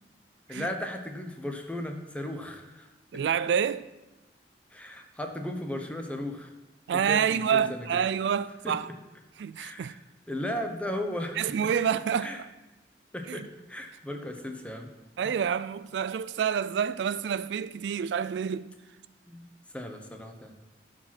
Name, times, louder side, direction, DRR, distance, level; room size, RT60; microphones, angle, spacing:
voice 1, 0.5-2.9 4.7-6.5 7.0-7.9 8.6-8.7 9.6-10.0 10.3-11.4 12.2-12.4 13.1-14.9 19.3-19.4 19.7-20.5, left 1 dB, 5° left, 0.9 m, -36 dB
voice 2, 3.1-3.8 6.9-8.9 9.4-9.9 11.4-12.5 13.3-13.5 15.2-18.7, right 7 dB, 75° right, 0.3 m, -28 dB
12.0 x 5.0 x 5.8 m
head